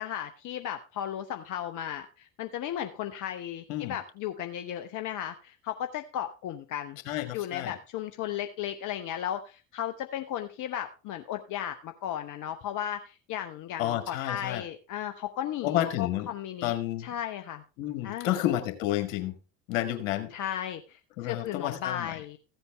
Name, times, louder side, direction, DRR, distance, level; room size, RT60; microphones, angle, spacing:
voice 1, 0.0-7.0 7.3-16.7 17.0-17.6 18.0-18.4 20.3-22.4, left 10 dB, 50° left, 7 dB, 0.9 m, -35 dB
voice 2, 7.1-7.7 13.8-14.6 15.6-16.3 16.6-17.1 17.8-19.3 19.7-20.3 21.2-22.2, left 13 dB, 70° left, 8 dB, 1.8 m, -30 dB
14.5 x 8.1 x 3.4 m, 0.32 s
hypercardioid pair, 65°, 40 cm